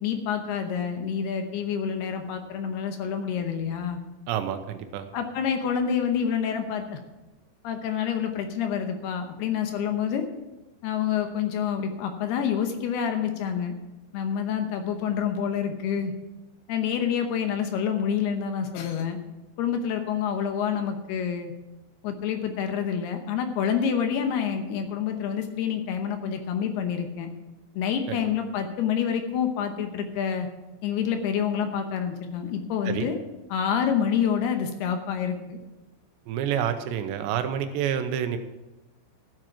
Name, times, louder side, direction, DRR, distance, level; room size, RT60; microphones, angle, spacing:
voice 1, 0.0-4.0 5.1-7.0 7.6-10.3 10.8-13.7 14.1-16.1 16.7-19.2 19.6-21.5 22.0-27.3 27.8-30.5 30.8-33.2 33.5-35.6, left 8 dB, 75° left, 6 dB, 2.7 m, -27 dB
voice 2, 4.3-5.1 28.1-28.2 32.9-33.1 36.3-38.4, right 9 dB, 85° right, 8 dB, 3.0 m, -28 dB
14.0 x 7.5 x 5.9 m, 1.0 s
omnidirectional pair, 5.1 m